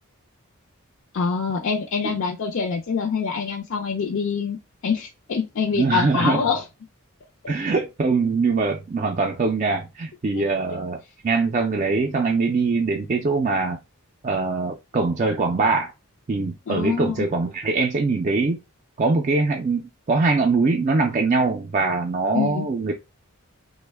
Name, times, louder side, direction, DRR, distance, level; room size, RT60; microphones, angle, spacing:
voice 1, 1.1-4.6 4.8-6.6 10.3-10.4 16.7-17.3 22.3-22.7, left 5 dB, 60° left, 0.4 m, -25 dB
voice 2, 5.8-6.5 7.5-13.8 14.2-15.9 16.3-18.6 19.0-22.9, right 3 dB, 35° right, 0.4 m, -22 dB
2.9 x 2.1 x 3.3 m
head